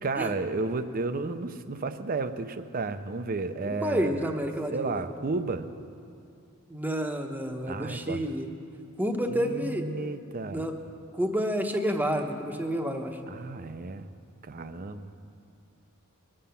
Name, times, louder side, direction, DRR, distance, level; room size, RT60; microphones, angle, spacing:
voice 1, 0.0-4.4 4.7-5.7 7.7-8.2 9.3-10.7 13.3-14.1 14.4-15.1, right 3 dB, 40° right, 11 dB, 0.6 m, -32 dB
voice 2, 3.6-5.0 6.7-8.5 9.0-10.1 10.5-10.7 11.1-13.2, equal, 10° right, 4 dB, 0.9 m, -29 dB
21.5 x 7.7 x 6.9 m, 2.5 s
head